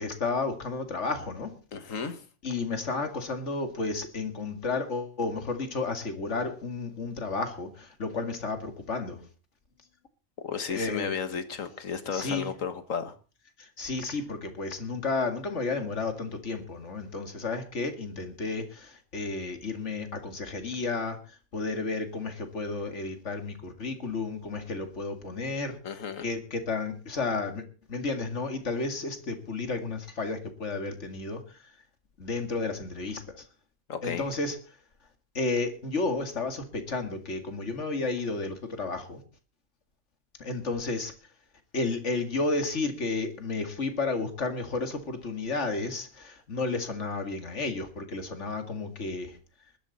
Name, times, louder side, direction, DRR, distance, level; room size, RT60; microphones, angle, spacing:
voice 1, 0.0-1.5 2.4-9.2 10.7-11.1 12.1-12.5 13.6-25.8 26.2-27.6 27.9-31.6 32.2-33.4 34.0-34.6 35.3-39.2 40.4-41.1 41.7-49.4, left 3 dB, 65° left, 2.4 m, -32 dB
voice 2, 1.7-2.2 10.4-13.1 25.8-26.3 33.9-34.2, left 6 dB, 85° left, 1.8 m, -33 dB
20.0 x 12.5 x 4.1 m
omnidirectional pair, 1.3 m